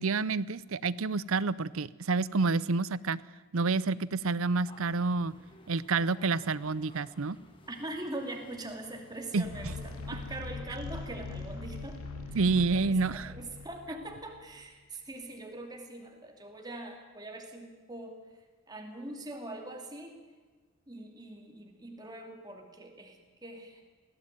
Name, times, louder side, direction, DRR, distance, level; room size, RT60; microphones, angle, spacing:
voice 1, 0.0-3.2 3.5-5.3 5.7-7.4 9.3-9.4 12.3-13.3, right 4 dB, 70° right, 19 dB, 0.6 m, -28 dB
sound 1, 4.6-10.4, left 2 dB, 25° left, 2.1 m, -57 dB
voice 2, 7.7-12.0 12.3-12.4 12.9-18.2 18.7-20.2 20.9-23.2 23.4-23.8, right 1 dB, 20° right, 3 dB, 2.7 m, -42 dB
sound 2, 9.4-14.6, left 3 dB, 80° left, 2.7 m, -41 dB
20.5 x 16.5 x 9.1 m, 1.4 s
head